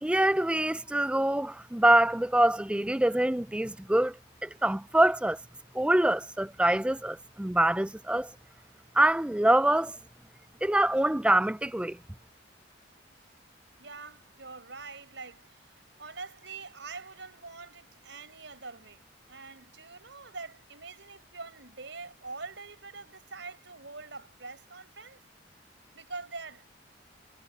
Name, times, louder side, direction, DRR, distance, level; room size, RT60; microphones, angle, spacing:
voice 1, 0.0-4.1 4.4-5.4 5.7-8.3 9.0-9.9 10.6-12.0, right 1 dB, 5° right, 0.3 m, -25 dB
voice 2, 13.8-25.2 25.9-26.7, right 4 dB, 70° right, 5.2 m, -44 dB
head